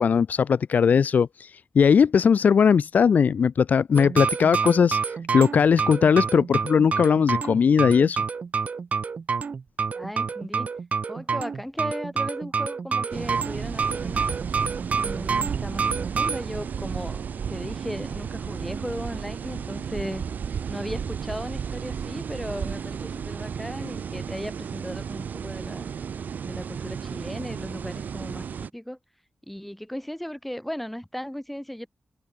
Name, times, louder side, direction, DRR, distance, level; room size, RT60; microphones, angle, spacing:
voice 1, 0.0-5.0 5.3-8.2, left 6 dB, 70° left, 0.9 m, -19 dB
sound 1, 3.9-16.4, right 5 dB, 55° right, 1.5 m, -28 dB
voice 2, 9.9-10.7 11.1-14.5 15.0-20.2 20.7-25.9 26.5-29.0 29.5-31.9, equal, 5° left, 7.9 m, -36 dB
sound 2, 13.1-28.7, right 7 dB, 80° right, 4.7 m, -33 dB
wide cardioid pair, 120°, 3 cm